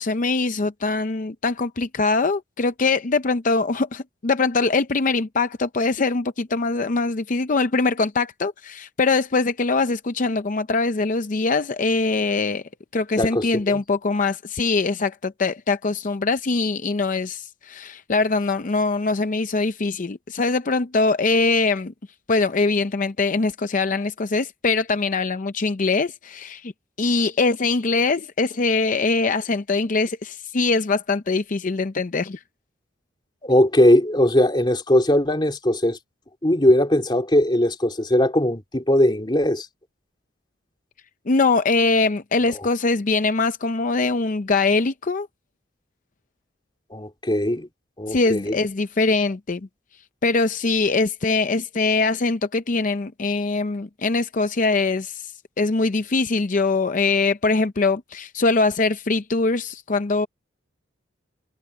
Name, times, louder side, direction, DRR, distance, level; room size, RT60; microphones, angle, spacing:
voice 1, 0.0-12.6 12.9-21.9 22.3-26.7 27.0-32.4 41.3-45.3 48.1-49.6 50.2-60.3, left 3 dB, 45° left, 0.6 m, -22 dB
voice 2, 13.2-13.8 33.4-36.0 36.4-39.7 42.5-42.6 46.9-47.7 48.0-48.6, left 1 dB, 25° left, 2.9 m, -19 dB
head